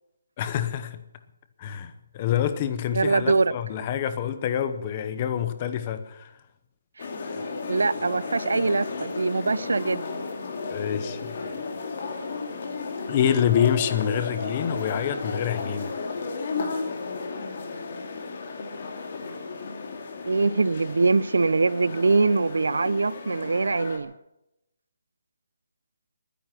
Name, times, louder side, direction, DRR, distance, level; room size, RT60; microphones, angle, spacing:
voice 1, 0.4-1.0 1.6-6.3 7.2-7.4 10.7-11.4 13.1-15.9, left 9 dB, 20° left, 0.8 m, -27 dB
voice 2, 2.9-3.5 7.0-7.1 7.7-10.2 14.4-14.5 20.2-24.1, right 3 dB, 90° right, 0.7 m, -23 dB
sound 1, 7.0-24.0, left 4 dB, 35° left, 2.5 m, -34 dB
21.5 x 10.5 x 6.1 m
hypercardioid pair, 180°, 0 cm